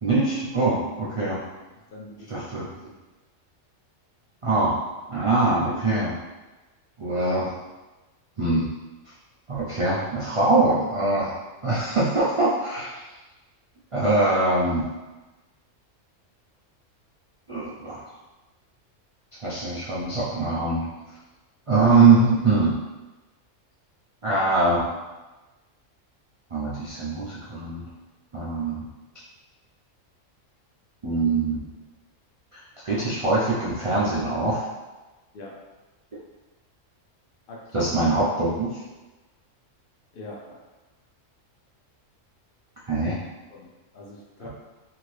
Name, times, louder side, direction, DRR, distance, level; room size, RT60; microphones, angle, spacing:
voice 1, 0.0-1.4 2.3-2.7 4.4-4.8 5.1-6.1 7.0-7.5 8.4-8.7 9.5-11.3 11.6-13.0 13.9-14.8 17.5-18.0 19.4-20.9 21.7-22.8 24.2-24.9 26.5-27.8 28.3-28.8 31.0-31.6 32.8-34.7 37.7-38.8 42.9-43.2 44.4-44.5, right 3 dB, 60° right, -9 dB, 0.3 m, -22 dB
voice 2, 1.9-2.3 2.8-3.0 35.3-35.6 37.5-37.9 40.1-40.6 43.5-44.5, left 2 dB, 60° left, -2 dB, 0.6 m, -43 dB
2.7 x 2.6 x 3.1 m, 1.1 s
omnidirectional pair, 1.3 m